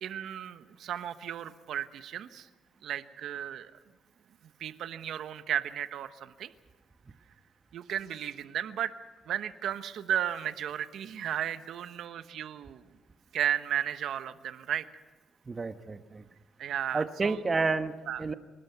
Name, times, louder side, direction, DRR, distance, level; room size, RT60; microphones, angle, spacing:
voice 1, 0.0-2.5 2.8-3.7 4.6-6.5 7.7-8.9 9.2-12.9 13.3-15.0 16.6-17.4 18.1-18.2, right 10 dB, 75° right, 11 dB, 1.1 m, -34 dB
voice 2, 15.5-16.2 16.9-18.3, right 4 dB, 30° right, 10 dB, 1.2 m, -30 dB
26.0 x 12.5 x 9.4 m, 1.3 s
cardioid pair, 90°, 0 cm